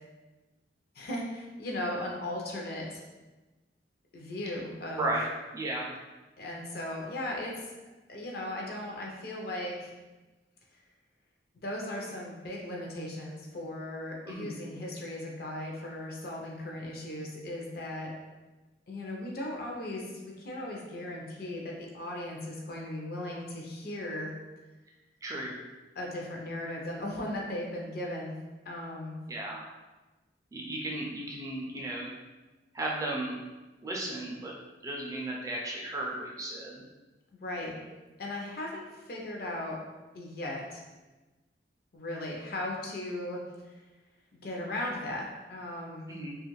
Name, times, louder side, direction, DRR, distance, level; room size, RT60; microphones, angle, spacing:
voice 1, 0.9-3.0 4.1-5.1 6.4-7.7 8.1-9.9 11.6-18.1 18.9-24.3 25.9-28.4 28.6-29.2 37.3-37.7 38.2-39.8 40.1-40.8 41.9-43.8 44.4-45.2 45.5-46.1, left 1 dB, 55° left, -1 dB, 0.5 m, -37 dB
voice 2, 5.0-5.3 5.5-5.9 14.3-14.6 25.2-25.6 29.3-29.7 30.5-32.1 32.7-33.4 33.8-34.5 34.8-36.8 46.1-46.4, right 1 dB, 20° right, -3 dB, 0.3 m, -34 dB
2.4 x 2.3 x 3.0 m, 1.2 s
head